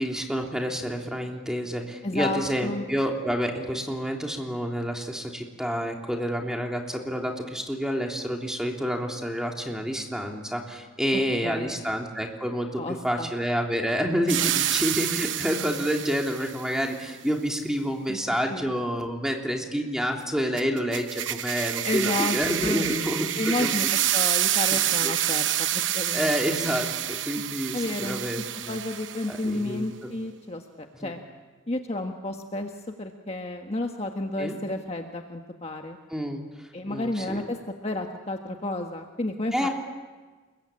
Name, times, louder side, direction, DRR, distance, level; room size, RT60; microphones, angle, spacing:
voice 1, 0.0-23.7 24.2-24.3 24.7-25.1 26.1-28.8 29.3-30.1 31.0-31.1 34.4-34.6 36.1-36.4 36.9-37.4 39.5-39.7, equal, 5° right, 1 dB, 3.2 m, -29 dB
voice 2, 2.0-2.9 11.1-11.8 12.8-13.3 18.1-18.2 18.5-18.7 21.8-22.8 23.4-26.5 27.7-31.2 31.7-36.0 36.7-37.6 37.8-39.7, left 2 dB, 30° left, 3 dB, 1.4 m, -31 dB
sound 1, 14.3-16.6 20.6-29.5, right 12 dB, 65° right, 1.0 m, -28 dB
29.5 x 22.0 x 8.7 m, 1.3 s
head